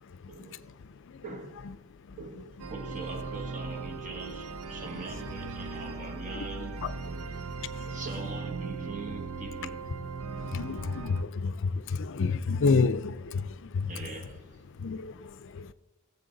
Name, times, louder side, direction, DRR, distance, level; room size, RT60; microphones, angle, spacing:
voice 1, 0.3-0.6 1.2-1.7 2.2-7.4 7.9-9.8 13.9-14.6, right 3 dB, 35° right, 1.3 m, -42 dB
sound 1, 2.6-11.2, right 4 dB, 90° right, 0.7 m, -38 dB
voice 2, 10.4-13.9 14.8-15.7, left 4 dB, 60° left, 0.5 m, -29 dB
17.5 x 7.5 x 3.9 m
head